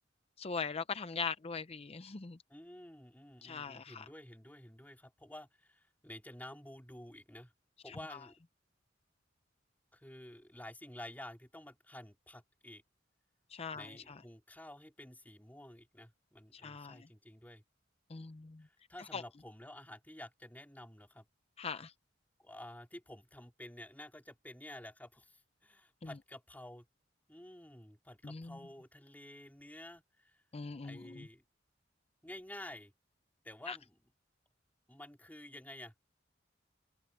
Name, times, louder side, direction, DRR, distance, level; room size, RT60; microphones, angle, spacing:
voice 1, 0.4-2.4 3.4-4.1 7.9-8.0 13.5-14.1 16.5-17.1 18.1-18.6 19.1-19.2 21.6-21.9 26.0-26.1 28.2-28.6 30.5-31.3 33.7-33.8, left 5 dB, 35° left, 0.6 m, -41 dB
voice 2, 2.5-7.5 7.8-8.3 9.9-12.8 13.7-17.6 18.6-21.3 22.4-26.9 27.3-30.4 30.8-31.4 32.2-32.9 33.4-34.0 34.9-35.9, left 1 dB, 10° left, 3.8 m, -51 dB
head